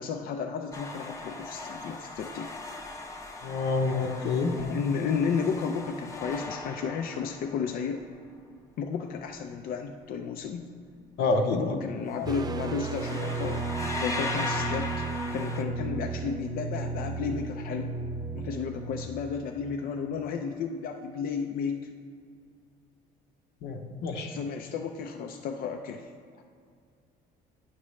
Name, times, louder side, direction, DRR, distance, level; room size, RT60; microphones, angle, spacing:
voice 1, 0.0-2.5 4.6-8.0 8.8-10.7 11.5-15.1 15.3-17.9 18.3-21.8 24.3-26.1, left 6 dB, 60° left, 4 dB, 0.4 m, -33 dB
sound 1, 0.7-7.8 12.1-12.3 12.6-15.6, left 2 dB, 20° left, 0.7 m, -38 dB
voice 2, 3.4-4.5 11.2-11.7 23.6-24.3, left 3 dB, 85° left, 4 dB, 0.8 m, -27 dB
sound 2, 12.3-19.1, right 3 dB, 25° right, 0.3 m, -34 dB
9.7 x 6.0 x 3.1 m, 2.2 s
cardioid pair, 110°, 17 cm